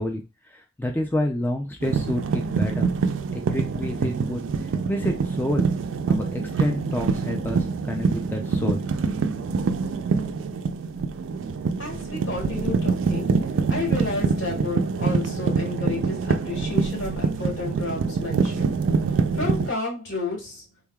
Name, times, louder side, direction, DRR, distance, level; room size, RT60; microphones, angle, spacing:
voice 1, 0.0-2.9 3.3-4.4 4.9-5.7 6.1-8.8 9.1-9.2, left 1 dB, 10° left, 3 dB, 0.4 m, -28 dB
sound 1, 1.8-19.7, right 4 dB, 80° right, 0.4 m, -25 dB
voice 2, 11.8-13.4 13.7-18.6 19.1-20.6, left 3 dB, 70° left, -2 dB, 1.7 m, -31 dB
3.6 x 3.2 x 2.3 m, 0.27 s
head